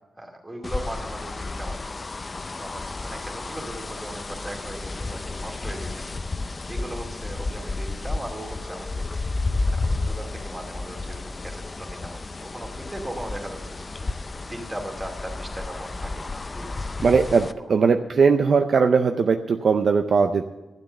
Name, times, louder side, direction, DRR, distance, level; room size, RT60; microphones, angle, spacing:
voice 1, 0.2-1.8 2.6-8.9 9.3-16.9, right 1 dB, 15° right, 1 dB, 2.3 m, -38 dB
sound 1, 0.6-17.5, left 3 dB, 30° left, 0.5 m, -32 dB
voice 2, 17.0-20.5, right 5 dB, 55° right, 6 dB, 0.6 m, -19 dB
12.0 x 9.4 x 6.8 m, 1.1 s
wide cardioid pair, 110°, 0 cm